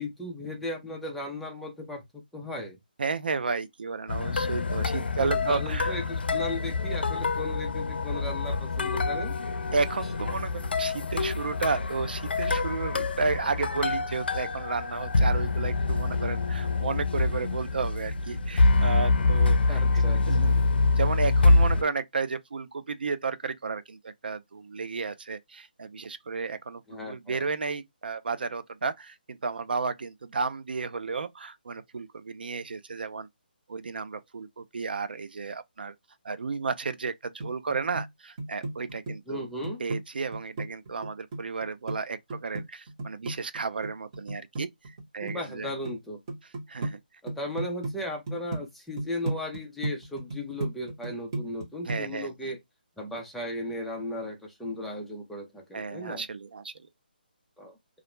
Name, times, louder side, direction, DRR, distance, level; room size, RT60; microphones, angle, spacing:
voice 1, 0.0-2.8 5.2-9.3 19.7-20.5 26.9-27.5 39.3-39.8 45.2-46.2 47.2-52.6 53.0-56.2 57.6-57.8, left 1 dB, ahead, 0.4 m, -36 dB
voice 2, 3.0-5.9 6.3-6.4 9.7-20.6 21.0-33.3 33.7-35.9 36.2-39.5 39.8-45.7 46.7-47.0 51.9-52.5 55.7-56.9, right 4 dB, 70° right, 0.4 m, -32 dB
sound 1, 4.1-21.8, left 3 dB, 80° left, 0.4 m, -26 dB
sound 2, 37.4-38.1 38.4-40.0 40.3-42.0 42.3-45.0 45.3-45.9 46.3-46.9 47.3-47.9 48.3-48.6 49.0-51.6 51.9-52.1, right 2 dB, 25° right, 1.0 m, -33 dB
2.4 x 2.1 x 3.0 m
hypercardioid pair, 170°, 5 cm